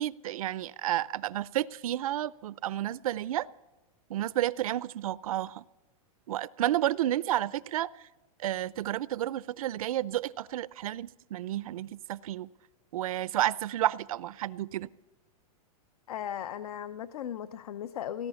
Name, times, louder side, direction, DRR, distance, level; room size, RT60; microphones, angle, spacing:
voice 1, 0.0-3.5 4.1-5.6 6.3-7.9 8.4-12.5 12.9-14.9, right 13 dB, 65° right, 19 dB, 0.5 m, -31 dB
voice 2, 16.1-18.3, left 10 dB, 75° left, 13 dB, 0.7 m, -37 dB
18.0 x 11.5 x 7.0 m, 1.1 s
supercardioid pair, 180°, 19 cm